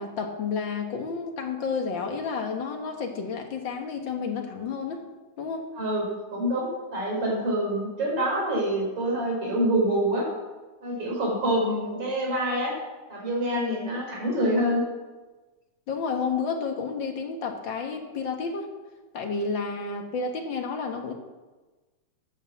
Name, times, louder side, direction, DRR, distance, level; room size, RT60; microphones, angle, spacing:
voice 1, 0.0-5.0 5.4-5.7 13.5-13.9 15.9-18.7 19.1-21.1, left 5 dB, 50° left, 4 dB, 1.7 m, -31 dB
voice 2, 6.3-10.3 10.8-12.7 13.1-14.8, right 1 dB, 50° right, -1 dB, 5.0 m, -26 dB
13.0 x 9.2 x 7.3 m, 1.2 s
omnidirectional pair, 3.4 m